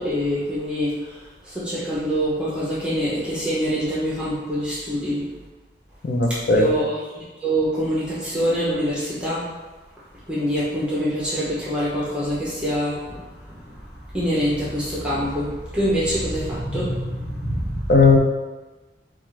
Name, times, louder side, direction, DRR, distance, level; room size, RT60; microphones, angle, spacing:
voice 1, 0.0-5.3 6.3-9.5 10.3-18.0, equal, 5° right, -8 dB, 0.8 m, -25 dB
voice 2, 6.0-6.7 17.9-18.2, left 3 dB, 60° left, 2 dB, 0.5 m, -16 dB
5.8 x 2.5 x 3.2 m, 1.2 s
head